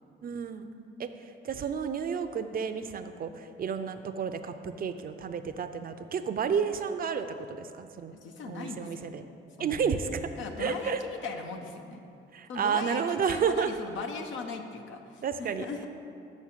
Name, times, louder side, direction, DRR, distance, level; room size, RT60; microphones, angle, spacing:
voice 1, 0.2-0.7 1.0-1.1 1.4-8.1 8.5-9.2 9.6-10.2 10.6-11.0 12.3-13.8 15.2-15.7, right 6 dB, 45° right, 9 dB, 0.5 m, -31 dB
voice 2, 8.1-9.1 9.6-9.9 10.4-12.0 12.5-15.9, left 5 dB, 75° left, 4 dB, 0.9 m, -39 dB
6.4 x 6.3 x 7.3 m, 2.6 s
cardioid pair, 90°, 20 cm